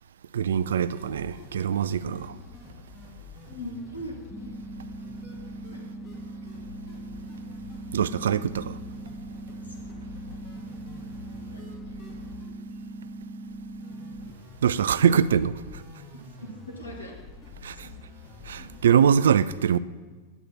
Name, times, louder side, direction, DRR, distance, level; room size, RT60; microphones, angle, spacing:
voice 1, 0.3-2.3 7.9-8.7 14.6-15.5 17.6-17.9 18.5-19.8, right 8 dB, 70° right, 0.3 m, -23 dB
sound 1, 0.9-18.9, left 4 dB, 25° left, 2.0 m, -47 dB
voice 2, 2.0-2.4 3.4-4.2 4.4-4.5 5.7-5.8 9.5-9.7 11.5-11.6 14.8-15.2 16.1-17.2 17.7-17.8 18.6-18.7, equal, 90° left, 1.7 m, -41 dB
sound 2, 4.3-14.3, right 2 dB, ahead, 0.4 m, -40 dB
10.0 x 8.0 x 4.2 m
figure-of-eight pair, 95°, 0 cm